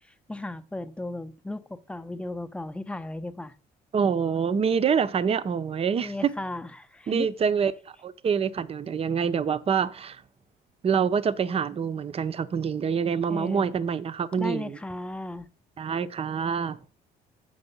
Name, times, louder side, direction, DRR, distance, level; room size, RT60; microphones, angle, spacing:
voice 1, 0.3-3.5 6.0-7.3 13.3-13.7 14.4-15.5, left 1 dB, 5° left, 0.7 m, -35 dB
voice 2, 3.9-6.3 7.1-7.7 8.0-10.2 10.8-14.8 15.8-16.8, right 6 dB, 35° right, 0.7 m, -26 dB
7.8 x 5.4 x 5.5 m
cardioid pair, 110°, 17 cm